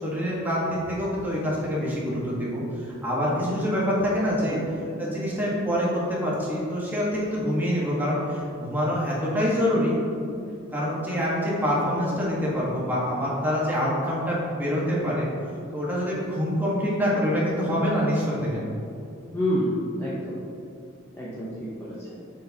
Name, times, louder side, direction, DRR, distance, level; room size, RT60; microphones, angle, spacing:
voice 1, 0.0-4.6 5.0-10.0 10.7-15.3 15.7-18.6, equal, 10° right, -7 dB, 1.5 m, -26 dB
voice 2, 19.3-20.4 21.2-22.2, equal, 10° left, -8 dB, 0.8 m, -28 dB
6.8 x 6.4 x 2.9 m, 2.6 s
head